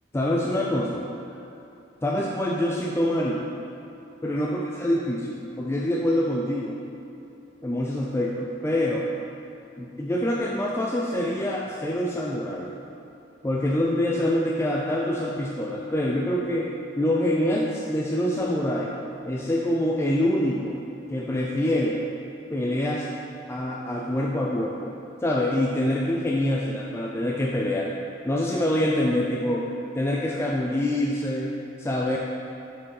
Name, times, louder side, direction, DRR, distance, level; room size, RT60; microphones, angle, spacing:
voice 1, 0.1-1.0 2.0-3.5 4.2-6.8 7.6-9.1 9.8-12.7 13.4-16.7 17.0-18.9 19.2-20.8 21.1-22.1 22.5-23.1 23.5-24.9 25.2-27.9 28.2-29.7 29.9-32.2, left 1 dB, 15° left, -3 dB, 0.3 m, -25 dB
5.9 x 5.0 x 4.7 m, 2.9 s
head